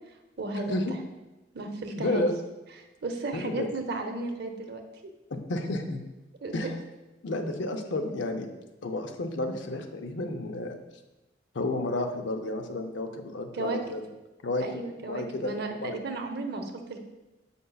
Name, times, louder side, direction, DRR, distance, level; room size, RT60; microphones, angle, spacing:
voice 1, 0.4-1.0 1.5-2.3 2.8-5.1 6.4-6.6 13.5-13.8 14.6-17.0, right 2 dB, 65° right, 4 dB, 0.7 m, -34 dB
voice 2, 1.9-2.3 3.3-3.7 5.3-6.0 6.5-6.7 7.2-8.5 8.8-10.8 11.5-14.1 14.4-15.5 15.8-15.9, left 2 dB, 85° left, 5 dB, 0.6 m, -31 dB
7.6 x 5.3 x 2.3 m, 1.0 s
head